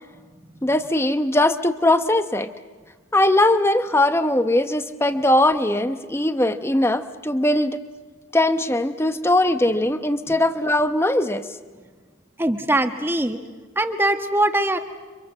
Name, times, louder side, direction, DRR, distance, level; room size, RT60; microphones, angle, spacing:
voice 1, 0.6-2.5 3.1-7.8 8.3-11.5, left 1 dB, 10° left, 10 dB, 0.8 m, -20 dB
voice 2, 12.4-13.4 13.7-14.8, right 1 dB, 10° right, 7 dB, 1.2 m, -21 dB
30.0 x 24.5 x 7.4 m, 1.4 s
head